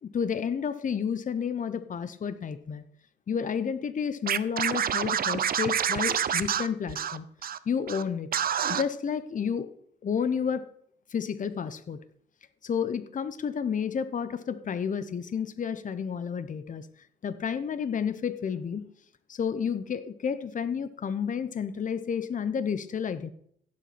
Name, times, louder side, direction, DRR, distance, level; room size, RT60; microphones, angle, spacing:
voice 1, 0.0-2.8 3.3-7.2 7.7-8.3 8.7-9.7 10.0-10.6 11.1-12.0 12.6-16.9 17.2-18.9 19.3-23.3, left 7 dB, 40° left, 12 dB, 0.9 m, -31 dB
Scratching (performance technique), 4.3-7.6 7.9-8.0 8.3-8.8, right 8 dB, 45° right, 0.7 m, -27 dB
16.0 x 7.4 x 4.3 m, 0.66 s
cardioid pair, 90°, 20 cm